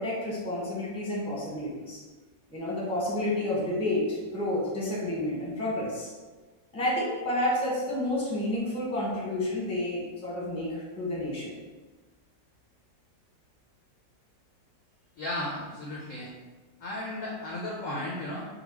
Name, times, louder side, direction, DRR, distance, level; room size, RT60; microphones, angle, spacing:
voice 1, 0.0-2.0 2.5-6.1 6.7-11.5, left 1 dB, 5° left, -6 dB, 0.7 m, -30 dB
voice 2, 15.2-16.3 16.8-18.5, left 1 dB, 70° left, -3 dB, 0.8 m, -34 dB
4.0 x 2.3 x 4.3 m, 1.3 s
omnidirectional pair, 2.0 m